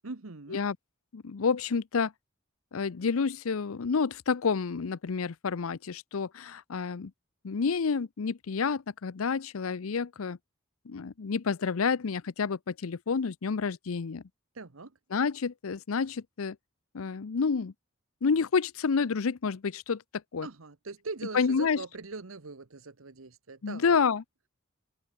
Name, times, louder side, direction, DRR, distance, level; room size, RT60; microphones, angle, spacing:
voice 1, 0.0-0.6 14.5-15.0 20.4-24.0, right 3 dB, 80° right, 1.2 m, -41 dB
voice 2, 1.1-2.1 2.7-7.1 7.4-10.4 10.9-14.2 15.1-16.6 16.9-17.7 18.2-20.0 20.3-20.5 21.3-21.8 23.6-24.2, left 5 dB, 85° left, 0.6 m, -29 dB
open air
head